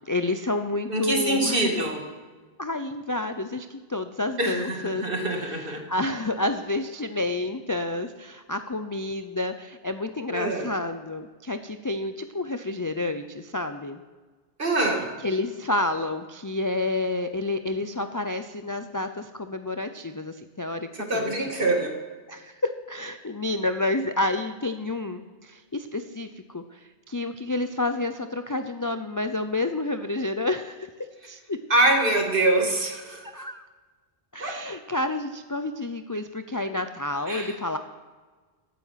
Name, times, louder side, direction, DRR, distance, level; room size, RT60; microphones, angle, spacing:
voice 1, 0.1-1.9 2.6-5.0 5.3-14.0 15.2-21.3 22.3-26.8 27.1-30.9 31.3-31.6 33.2-33.6 34.3-37.8, left 2 dB, 30° left, 8 dB, 0.4 m, -29 dB
voice 2, 0.9-2.0 4.4-5.8 10.3-10.7 14.6-15.1 20.9-22.0 31.7-33.2 34.4-34.6 37.3-37.5, right 2 dB, 50° right, 2 dB, 2.2 m, -24 dB
15.5 x 9.1 x 5.8 m, 1.4 s
omnidirectional pair, 1.2 m